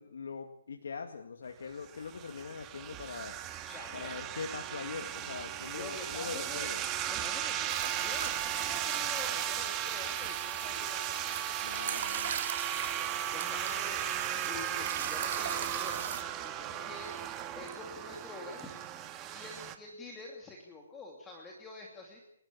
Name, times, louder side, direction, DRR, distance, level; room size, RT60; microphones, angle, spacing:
voice 1, 0.0-3.4 3.9-6.8 11.6-12.4, left 5 dB, 70° left, 5 dB, 2.1 m, -42 dB
sound 1, 1.8-19.8, right 11 dB, 20° right, 1.6 m, -36 dB
voice 2, 3.6-4.1 5.7-6.7 7.1-11.4 12.7-14.0 14.4-17.2 17.5-18.8 19.3-22.2, left 2 dB, 10° left, 0 dB, 2.8 m, -47 dB
sound 2, 7.7-16.2, right 8 dB, 50° right, 3.2 m, -39 dB
29.5 x 12.5 x 8.7 m, 0.72 s
hypercardioid pair, 160°, 0 cm